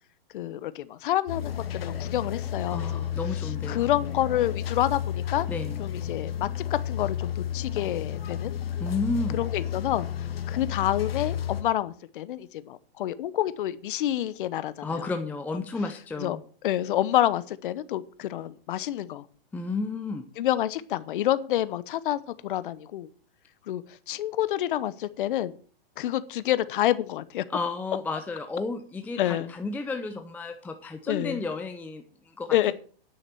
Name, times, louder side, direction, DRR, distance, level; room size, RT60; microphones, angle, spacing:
voice 1, 0.3-3.0 3.7-5.5 5.8-8.5 9.3-10.1 10.5-15.1 16.2-16.4 16.6-19.2 20.4-23.1 23.7-23.8 24.1-25.5 26.0-27.4 29.2-29.5 31.1-31.4 32.5-32.7, left 13 dB, 60° left, 16 dB, 1.0 m, -28 dB
sound 1, 1.3-11.6, left 10 dB, 75° left, 1.7 m, -32 dB
voice 2, 2.7-3.9 5.5-5.8 8.8-9.4 14.8-16.4 19.5-20.2 27.5-32.7, left 3 dB, 5° left, 6 dB, 0.5 m, -32 dB
9.9 x 7.3 x 6.7 m, 0.43 s
hypercardioid pair, 130°, 30 cm